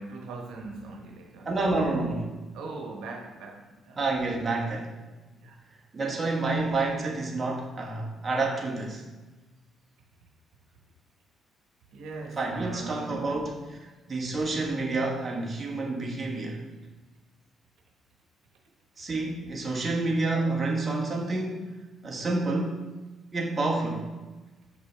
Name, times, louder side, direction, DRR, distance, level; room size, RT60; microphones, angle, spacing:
voice 1, 0.0-2.1 2.5-4.0 5.3-5.6 6.0-6.3 11.9-13.4, right 3 dB, 90° right, 1 dB, 0.9 m, -41 dB
voice 2, 1.4-2.2 4.0-4.9 5.9-9.1 12.4-13.8 14.1-16.6 19.0-21.7 22.0-22.8 23.3-24.1, right 2 dB, 30° right, -1 dB, 1.2 m, -29 dB
6.5 x 5.1 x 3.3 m, 1.2 s
cardioid pair, 90°, 0 cm